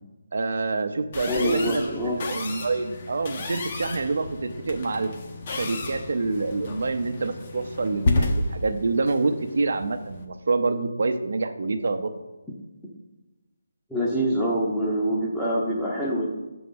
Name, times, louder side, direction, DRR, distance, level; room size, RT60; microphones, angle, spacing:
voice 1, 0.3-5.1 5.5-12.1, right 3 dB, 60° right, 9 dB, 0.7 m, -27 dB
sound 1, 1.1-10.2, left 2 dB, 35° left, 0.8 m, -31 dB
voice 2, 1.3-2.2 13.9-16.3, equal, ahead, -8 dB, 0.8 m, -25 dB
5.9 x 3.9 x 5.4 m, 1.1 s
figure-of-eight pair, 165°, 0 cm